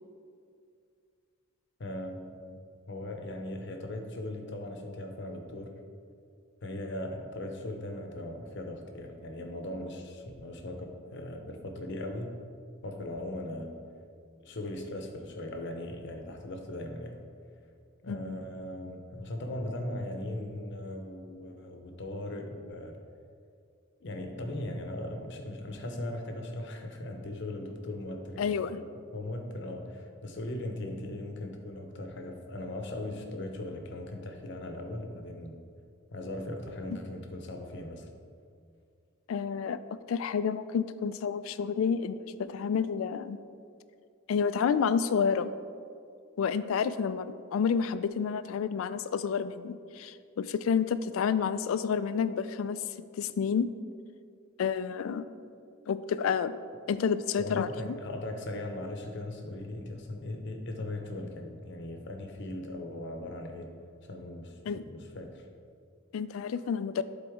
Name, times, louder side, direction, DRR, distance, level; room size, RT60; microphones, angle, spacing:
voice 1, 1.8-2.6 2.9-5.8 6.6-12.4 12.8-13.8 14.4-17.2 18.0-23.0 24.0-35.6 36.1-38.1 57.4-63.7 64.0-65.4, left 1 dB, 60° left, 4 dB, 0.8 m, -39 dB
voice 2, 18.1-18.4 28.4-28.8 39.3-39.8 40.1-43.4 44.3-45.5 46.4-52.8 53.1-53.7 54.6-55.3 55.9-56.5 56.9-57.7 64.7-64.8 66.1-67.0, left 6 dB, 80° left, 13 dB, 0.3 m, -29 dB
11.5 x 4.0 x 3.6 m, 2.3 s
head